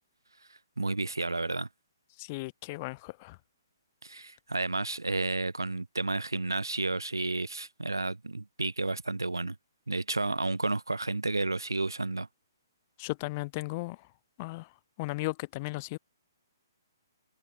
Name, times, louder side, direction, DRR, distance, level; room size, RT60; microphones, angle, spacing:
voice 1, 0.8-1.7 4.0-9.6 9.9-12.3, right 2 dB, 80° right, 2.7 m, -31 dB
voice 2, 2.2-3.4 13.0-14.1 14.4-14.7 15.0-16.0, left 23 dB, 30° left, 1.5 m, -36 dB
figure-of-eight pair, 130°, 2 cm